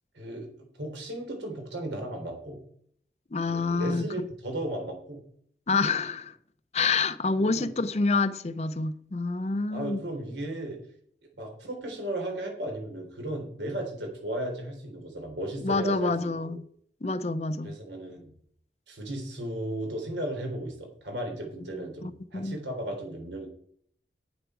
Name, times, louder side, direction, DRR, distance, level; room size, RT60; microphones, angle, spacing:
voice 1, 0.1-2.6 3.5-5.2 7.3-7.7 9.7-10.8 11.4-16.6 17.6-18.3 18.9-23.5, right 1 dB, 85° right, 3.5 m, -35 dB
voice 2, 3.3-4.0 5.7-6.3 6.7-10.0 15.6-16.6 17.0-17.8 22.0-22.6, left 3 dB, 35° left, 0.5 m, -27 dB
9.0 x 8.0 x 4.9 m
head